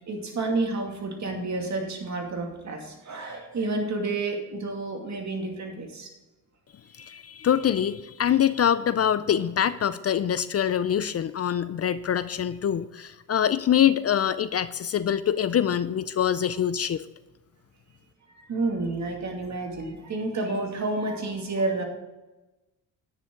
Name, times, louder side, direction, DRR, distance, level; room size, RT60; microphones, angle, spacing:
voice 1, 0.1-6.1 18.5-21.8, right 3 dB, 50° right, 2 dB, 2.4 m, -30 dB
voice 2, 7.0-17.0, left 9 dB, 45° left, 14 dB, 0.5 m, -24 dB
10.0 x 9.6 x 3.8 m, 1.1 s
cardioid pair, 95°, 35 cm